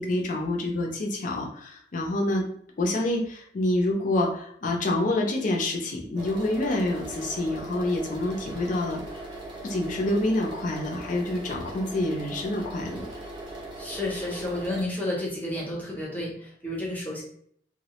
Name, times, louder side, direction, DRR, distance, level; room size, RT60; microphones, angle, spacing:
voice 1, 0.0-2.4 2.8-9.0 9.6-13.1, left 1 dB, 45° left, 1 dB, 0.5 m, -27 dB
sound 1, 6.2-14.8, right 1 dB, 30° right, 0.6 m, -39 dB
voice 2, 13.8-17.2, left 1 dB, 10° left, -4 dB, 0.7 m, -31 dB
2.2 x 2.0 x 2.9 m, 0.65 s
head